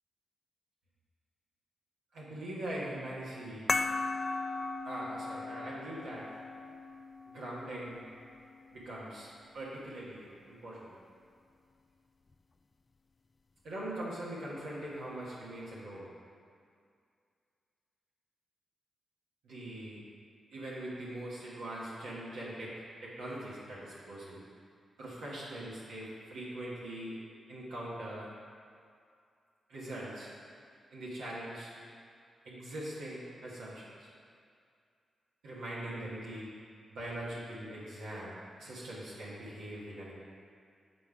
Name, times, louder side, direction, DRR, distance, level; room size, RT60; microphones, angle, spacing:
voice 1, 2.1-3.7 4.8-6.3 7.3-8.0 8.7-9.3 9.5-10.9 13.6-16.1 19.4-20.0 20.5-24.4 25.0-27.2 27.5-28.3 29.7-30.3 30.9-31.7 32.4-33.9 35.4-36.5 36.9-38.3 38.6-40.1, right 1 dB, 85° right, -8 dB, 1.2 m, -42 dB
sound 1, 3.7-8.8, left 3 dB, 40° left, 0.3 m, -37 dB
7.5 x 3.7 x 4.7 m, 2.3 s
supercardioid pair, 45°, 0 cm